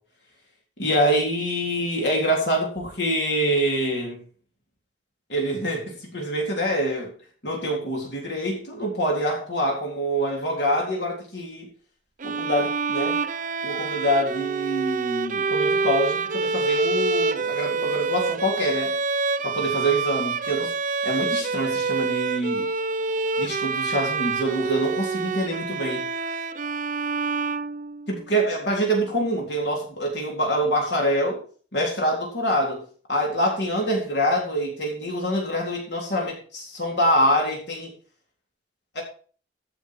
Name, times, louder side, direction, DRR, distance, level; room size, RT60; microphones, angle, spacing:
voice 1, 0.8-4.2 5.3-7.1 7.4-11.7 12.2-13.2 13.6-19.0 19.4-20.7 21.0-22.7 23.4-26.1 28.1-31.4 31.7-32.8 33.1-37.9 38.9-39.0, equal, 60° left, -1 dB, 3.9 m, -25 dB
Bowed string instrument, 12.2-28.3, right 4 dB, 45° right, 0.6 m, -27 dB
15.5 x 7.0 x 4.6 m, 0.41 s
head